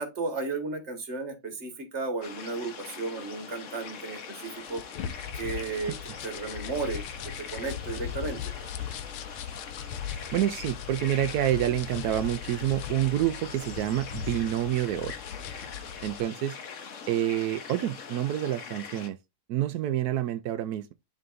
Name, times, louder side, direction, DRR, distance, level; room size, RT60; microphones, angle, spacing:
voice 1, 0.0-4.8 5.4-6.0 6.2-7.0 7.4-8.4, right 3 dB, 35° right, 1.8 m, -34 dB
sound 1, 2.2-19.1, left 6 dB, 50° left, 1.1 m, -42 dB
sound 2, 4.5-16.2, left 9 dB, 85° left, 1.6 m, -39 dB
voice 2, 10.3-15.1 16.0-16.6 17.1-19.2 19.5-20.9, right 12 dB, 85° right, 0.8 m, -28 dB
11.0 x 3.9 x 2.6 m
omnidirectional pair, 2.2 m